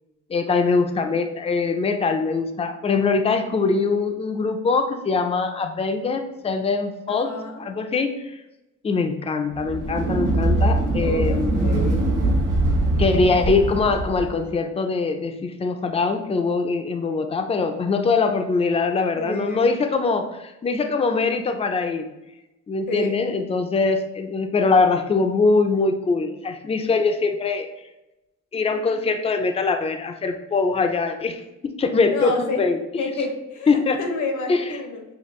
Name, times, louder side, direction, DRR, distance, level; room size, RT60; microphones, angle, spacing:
voice 1, 0.3-7.3 7.6-8.3 8.8-11.6 13.0-22.1 22.7-27.7 28.5-32.8 33.7-34.0 34.5-34.6, left 4 dB, 20° left, 6 dB, 0.4 m, -22 dB
voice 2, 7.1-7.7 11.0-12.1 19.2-19.7 22.9-23.3 32.1-32.6 33.0-35.0, left 2 dB, 80° left, 3 dB, 1.1 m, -29 dB
sound 1, 9.5-14.4, right 2 dB, 85° right, 1.0 m, -22 dB
6.8 x 2.3 x 3.1 m, 0.97 s
cardioid pair, 90°, 30 cm